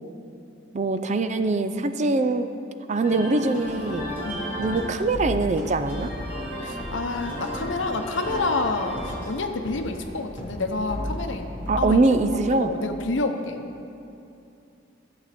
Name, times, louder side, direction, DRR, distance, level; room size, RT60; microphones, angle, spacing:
voice 1, 0.7-2.5 2.9-4.1 4.6-6.1 11.7-12.7, right 3 dB, 35° right, 9 dB, 0.4 m, -23 dB
sound 1, 3.0-12.4, equal, 10° right, 2.9 m, -36 dB
sound 2, 3.6-11.8, equal, 25° left, 1.1 m, -37 dB
voice 2, 6.6-11.5 11.8-12.2 12.5-13.6, left 3 dB, 75° left, 6 dB, 0.8 m, -28 dB
14.0 x 8.0 x 4.2 m, 2.7 s
head